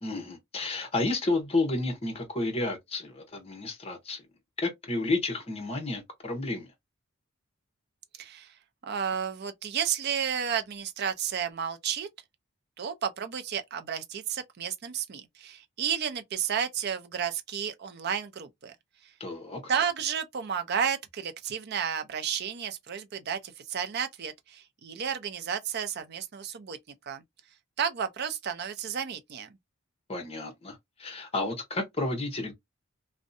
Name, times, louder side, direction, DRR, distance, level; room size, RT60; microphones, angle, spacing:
voice 1, 0.0-4.2 4.6-6.7 19.2-19.6 30.1-32.5, left 2 dB, 30° left, 0.8 m, -31 dB
voice 2, 8.2-8.5 8.8-12.1 12.8-18.7 19.7-26.8 27.1-27.2 27.8-29.5, right 8 dB, 50° right, 0.4 m, -32 dB
2.6 x 2.1 x 2.5 m
head